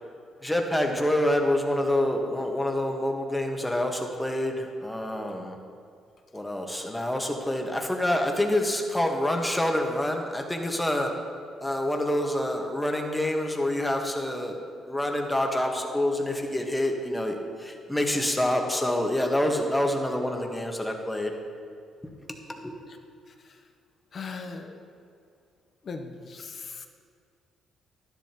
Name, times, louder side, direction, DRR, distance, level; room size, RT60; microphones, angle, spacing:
voice 1, 0.4-5.6 6.3-11.1 11.6-14.6 14.9-21.3 22.5-22.7, left 1 dB, 5° left, 2 dB, 1.3 m, -27 dB
voice 2, 24.1-24.8 25.8-26.9, left 4 dB, 50° left, 5 dB, 0.7 m, -38 dB
11.5 x 10.5 x 2.9 m, 2.3 s
cardioid pair, 90°, 0 cm